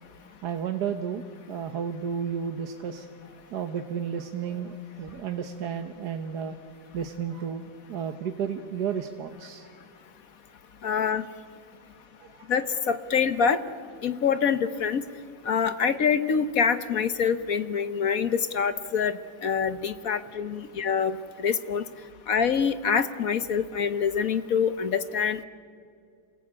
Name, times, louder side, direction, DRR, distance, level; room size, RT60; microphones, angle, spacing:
voice 1, 0.4-3.1 3.5-6.6 6.9-7.6 7.9-9.7 12.2-12.5 20.1-20.3 20.6-20.7, right 7 dB, 60° right, 6 dB, 1.5 m, -32 dB
voice 2, 10.8-11.2 12.5-13.6 14.0-15.0 15.4-21.8 22.3-25.4, left 6 dB, 55° left, 12 dB, 1.2 m, -25 dB
27.0 x 20.5 x 8.7 m, 2.3 s
omnidirectional pair, 2.1 m